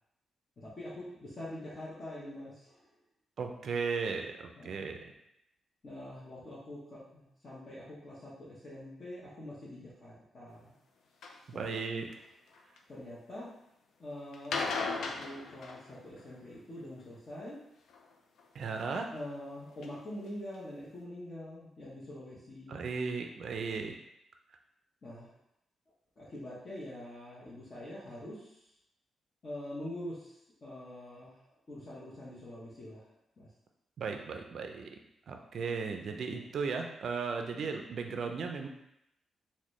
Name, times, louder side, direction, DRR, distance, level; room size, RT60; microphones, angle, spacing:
voice 1, 0.6-2.9 4.5-4.8 5.8-10.7 11.5-11.8 12.9-13.5 14.0-17.6 19.1-22.8 25.0-25.3 26.2-28.7 29.4-33.5 36.5-36.6, left 1 dB, 40° left, -8 dB, 0.8 m, -45 dB
voice 2, 3.4-5.1 11.6-12.1 18.5-19.1 22.7-23.9 34.0-34.9 35.3-38.7, right 5 dB, 60° right, 4 dB, 0.3 m, -36 dB
sound 1, 11.2-11.4 12.1-12.8 14.3-16.3 17.9-18.5 19.2-19.3 19.8-19.9 20.3-20.4 20.5-20.6, left 4 dB, 80° left, 0.4 m, -37 dB
3.8 x 2.1 x 3.1 m, 0.82 s
cardioid pair, 125°, 0 cm